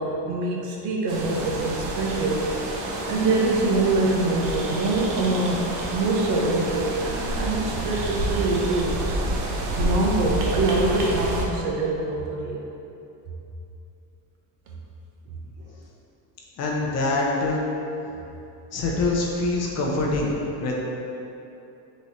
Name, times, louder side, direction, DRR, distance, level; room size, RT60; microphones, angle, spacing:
voice 1, 0.0-2.5 3.1-9.0 9.7-12.6 16.8-16.9, right 2 dB, 90° right, -1 dB, 0.9 m, -24 dB
sound 1, 1.1-11.5, right 2 dB, 60° right, 0.8 m, -29 dB
voice 2, 16.6-17.6 18.7-20.3 20.6-20.8, left 2 dB, 35° left, -3 dB, 0.5 m, -24 dB
4.0 x 3.1 x 4.2 m, 2.8 s
cardioid pair, 160°, 46 cm